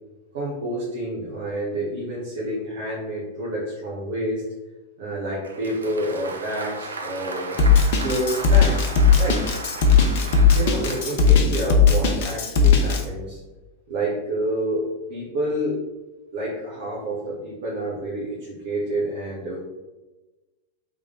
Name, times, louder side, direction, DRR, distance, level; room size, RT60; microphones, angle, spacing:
voice 1, 0.3-4.4 5.0-7.6 8.0-9.4 10.5-13.4 13.9-15.8 16.3-19.6, right 1 dB, 55° right, -6 dB, 1.2 m, -28 dB
Applause, 5.4-11.5, right 3 dB, 70° right, 0.5 m, -36 dB
Drum kit, 7.6-13.0, left 6 dB, 50° left, 0.7 m, -17 dB
3.8 x 3.3 x 3.8 m, 1.1 s
figure-of-eight pair, 90°, 0 cm